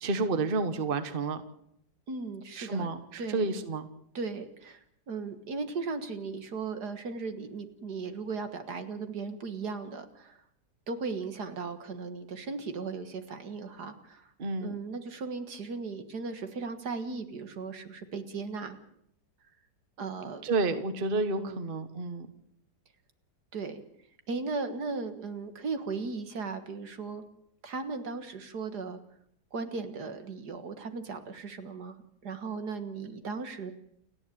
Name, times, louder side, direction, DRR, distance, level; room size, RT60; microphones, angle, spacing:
voice 1, 0.0-1.4 2.6-3.9 14.4-14.8 20.4-22.3, right 3 dB, 35° right, 10 dB, 1.4 m, -30 dB
voice 2, 2.1-2.9 3.2-3.6 4.1-10.4 10.9-14.3 14.6-18.8 20.0-20.5 21.4-21.6 23.5-23.8 24.3-27.2 27.6-29.0 29.5-33.7, right 4 dB, 65° right, 9 dB, 2.2 m, -37 dB
29.5 x 10.5 x 8.6 m, 0.72 s
omnidirectional pair, 1.9 m